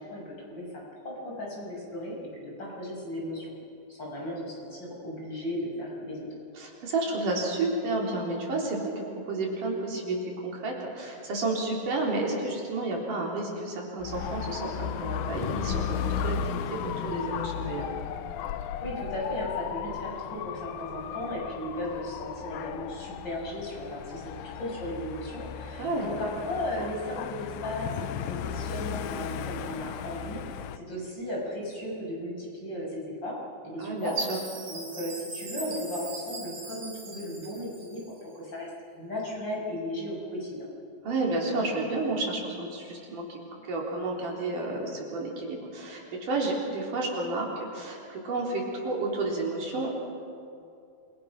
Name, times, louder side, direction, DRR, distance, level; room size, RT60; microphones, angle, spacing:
voice 1, 0.0-3.5 3.9-6.3 18.8-33.4 33.6-34.2 34.7-40.7, left 1 dB, 30° left, -3 dB, 7.3 m, -36 dB
voice 2, 6.6-10.2 10.4-17.9 25.8-26.1 33.8-34.4 41.0-43.4 43.6-49.9, right 2 dB, 70° right, -2 dB, 5.3 m, -31 dB
Dog / Motorcycle, 14.0-30.8, left 9 dB, 80° left, 2.2 m, -35 dB
Chime, 34.0-38.2, right 3 dB, 50° right, 5.2 m, -41 dB
28.5 x 24.5 x 6.0 m, 2.5 s
omnidirectional pair, 3.8 m